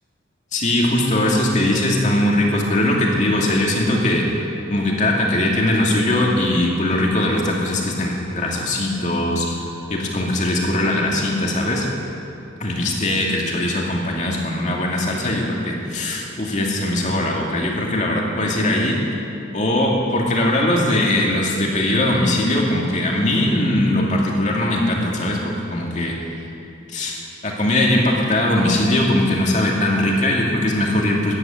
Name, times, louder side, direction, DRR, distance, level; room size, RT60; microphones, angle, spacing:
voice 1, 0.5-4.2 4.7-9.6 9.9-11.9 12.6-19.0 19.5-26.2 26.9-27.2 27.4-31.4, left 1 dB, 40° left, -2 dB, 2.4 m, -20 dB
14.0 x 9.8 x 8.8 m, 2.7 s
head